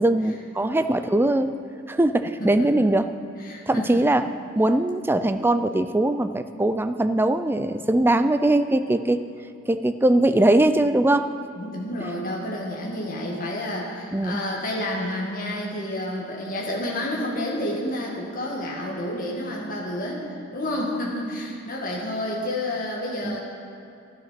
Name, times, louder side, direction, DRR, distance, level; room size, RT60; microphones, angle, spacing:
voice 1, 0.0-1.5 1.9-3.1 3.7-4.3 4.6-9.2 9.7-11.3 14.1-14.4 23.2-23.4, right 1 dB, 10° right, 10 dB, 0.4 m, -21 dB
voice 2, 2.4-2.9 3.4-4.0 11.6-23.4, left 1 dB, 45° left, -3 dB, 2.0 m, -30 dB
12.0 x 12.0 x 5.9 m, 2.7 s
head